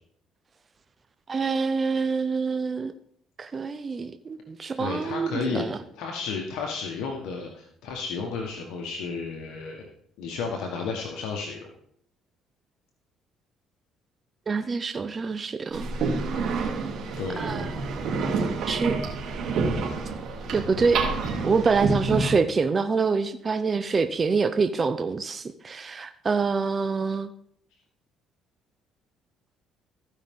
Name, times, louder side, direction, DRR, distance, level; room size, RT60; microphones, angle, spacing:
voice 1, 1.3-2.9 3.4-5.8 14.5-15.9 17.4-17.7 18.7-18.9 20.5-21.0 21.4-27.3, right 4 dB, 35° right, 9 dB, 0.5 m, -26 dB
voice 2, 4.8-5.7 5.9-9.9 10.2-11.7 17.2-17.5, left 5 dB, 80° left, 1 dB, 1.2 m, -32 dB
sound 1, 15.7-22.3, right 4 dB, 65° right, 2.8 m, -28 dB
15.0 x 5.5 x 3.6 m, 0.68 s
supercardioid pair, 85°, 0 cm